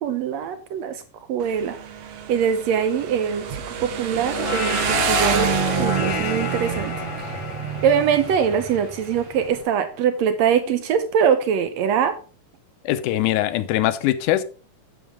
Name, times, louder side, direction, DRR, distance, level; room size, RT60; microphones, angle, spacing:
voice 1, 0.0-1.0 1.3-1.8 2.3-6.9 7.8-12.2, right 7 dB, 80° right, 1.5 m, -22 dB
Motorcycle, 1.4-9.6, right 9 dB, 65° right, 1.5 m, -28 dB
sound 1, 4.1-9.7, left 6 dB, 45° left, 1.4 m, -30 dB
voice 2, 12.9-14.4, left 14 dB, 75° left, 2.0 m, -22 dB
8.9 x 7.9 x 3.5 m
omnidirectional pair, 3.9 m